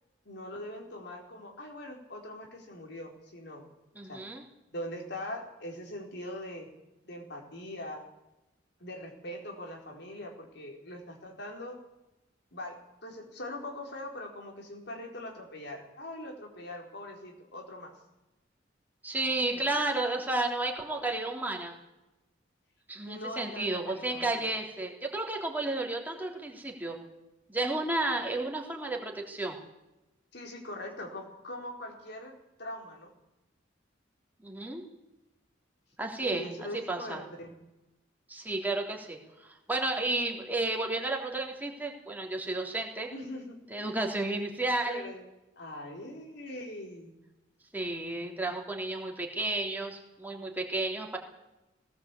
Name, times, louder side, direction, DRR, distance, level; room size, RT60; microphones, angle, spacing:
voice 1, 0.2-3.7 4.1-4.2 4.7-6.7 7.0-8.1 8.8-11.8 12.5-12.8 13.0-17.9 19.5-19.7 23.1-24.5 30.3-33.1 36.2-37.6 43.1-43.9 44.9-45.3 45.6-47.2, left 1 dB, 60° left, 2 dB, 4.5 m, -42 dB
voice 2, 4.0-4.4 19.0-21.8 22.9-27.0 27.5-29.6 34.4-34.8 36.0-36.5 36.9-37.2 38.3-43.1 43.7-45.1 47.7-51.2, right 2 dB, 10° right, 1 dB, 3.4 m, -32 dB
18.5 x 18.0 x 8.5 m, 0.98 s
head